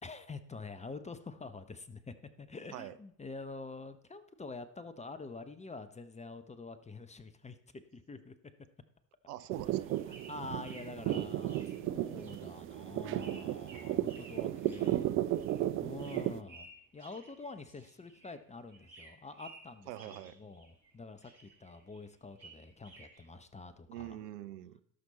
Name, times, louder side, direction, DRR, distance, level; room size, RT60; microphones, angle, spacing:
voice 1, 0.0-7.6 7.9-8.3 10.1-15.1 15.3-24.2, left 3 dB, 15° left, 11 dB, 0.8 m, -47 dB
voice 2, 9.3-10.0 19.9-20.4 23.9-24.8, right 13 dB, 65° right, 12 dB, 0.8 m, -44 dB
sound 1, 9.4-18.4 18.7-20.9 21.2-23.3, right 3 dB, 85° right, 2.1 m, -56 dB
sound 2, 9.5-16.4, right 13 dB, 30° right, 0.4 m, -34 dB
18.0 x 6.2 x 4.1 m, 0.68 s
figure-of-eight pair, 60°, 50 cm